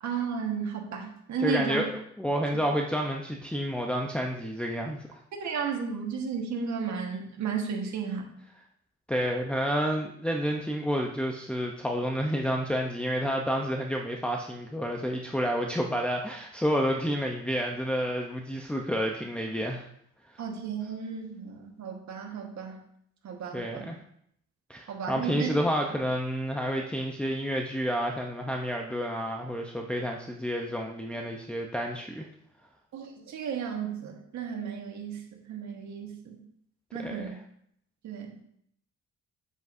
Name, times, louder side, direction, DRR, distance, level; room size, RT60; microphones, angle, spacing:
voice 1, 0.0-1.8 5.4-8.3 20.4-22.8 23.2-23.9 24.9-25.5 25.9-26.0 32.9-35.2 35.5-36.4 36.9-37.4 38.0-38.4, right 6 dB, 65° right, 2 dB, 1.6 m, -33 dB
voice 2, 1.4-5.2 9.1-19.9 23.5-24.0 24.7-32.3 37.0-37.3, equal, 5° left, 0 dB, 0.7 m, -30 dB
8.0 x 7.4 x 2.7 m, 0.69 s
cardioid pair, 90°, 30 cm